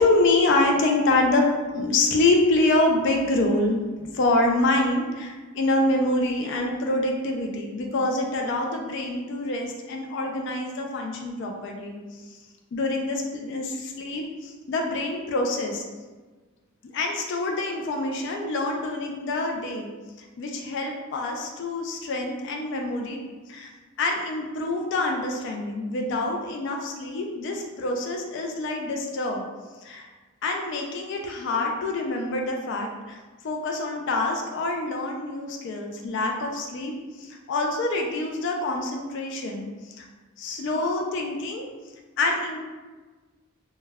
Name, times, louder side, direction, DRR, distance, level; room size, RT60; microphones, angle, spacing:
voice 1, 0.0-3.8 4.1-12.0 12.3-12.4 12.7-15.8 16.9-19.9 20.4-23.2 23.5-23.7 24.0-29.4 29.8-30.1 30.4-33.2 33.4-36.9 37.2-40.1 40.4-41.6 42.2-42.6, left 2 dB, 55° left, 1 dB, 0.3 m, -26 dB
2.2 x 2.1 x 3.3 m, 1.3 s
head